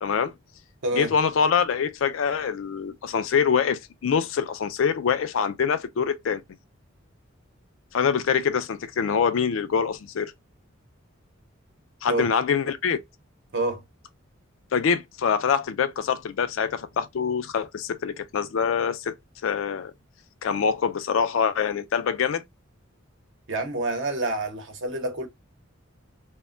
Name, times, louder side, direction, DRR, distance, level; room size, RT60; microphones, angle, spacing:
voice 1, 0.0-0.3 1.0-6.4 7.9-10.3 12.0-13.0 14.7-19.2 19.4-19.9 20.4-22.4, left 6 dB, 70° left, 0.4 m, -24 dB
voice 2, 0.8-1.1 12.1-12.3 13.5-13.8 23.5-25.3, right 2 dB, 60° right, 0.8 m, -27 dB
2.1 x 2.1 x 3.6 m
head